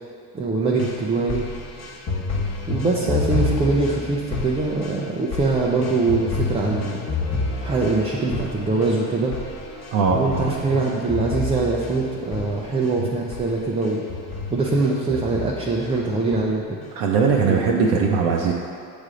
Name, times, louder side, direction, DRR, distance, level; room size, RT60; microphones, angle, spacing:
voice 1, 0.3-1.4 2.7-7.0 7.6-9.3 10.1-14.0 14.5-16.8 17.4-17.6, right 3 dB, 15° right, -3 dB, 0.4 m, -23 dB
sound 1, 0.7-13.0 13.3-13.5 13.8-15.9 16.3-16.9 17.3-17.4, left 3 dB, 35° left, 1.2 m, -29 dB
voice 2, 9.9-10.2 13.0-13.1 16.9-18.5, right 5 dB, 50° right, -1 dB, 0.7 m, -20 dB
8.0 x 3.4 x 3.7 m, 2.3 s
hypercardioid pair, 85°, 48 cm